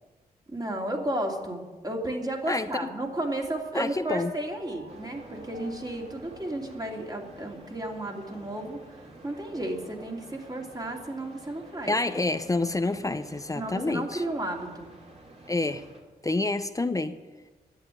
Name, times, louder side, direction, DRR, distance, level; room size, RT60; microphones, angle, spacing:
voice 1, 0.5-8.8 9.2-12.0 13.5-14.9, right 1 dB, 25° right, 1 dB, 2.8 m, -33 dB
voice 2, 2.5-2.9 3.7-4.3 11.9-14.2 15.5-15.9 16.2-17.2, left 2 dB, 20° left, 10 dB, 0.7 m, -28 dB
sound 1, 3.0-8.1, right 3 dB, 85° right, 2.7 m, -51 dB
sound 2, 4.9-16.0, right 2 dB, 40° right, 2.9 m, -49 dB
11.5 x 8.6 x 9.8 m, 1.2 s
cardioid pair, 70°, 17 cm